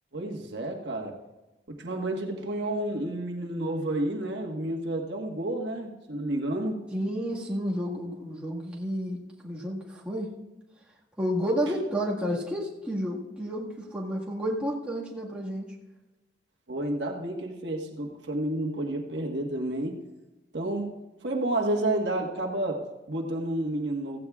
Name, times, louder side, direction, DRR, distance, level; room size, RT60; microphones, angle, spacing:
voice 1, 0.1-1.2 1.7-6.8 16.7-20.0 20.5-21.0 21.2-24.2, right 1 dB, 75° right, 0 dB, 1.4 m, -30 dB
voice 2, 6.9-10.3 11.2-15.7, equal, 5° right, -5 dB, 1.7 m, -31 dB
16.0 x 15.5 x 2.4 m, 1.1 s
head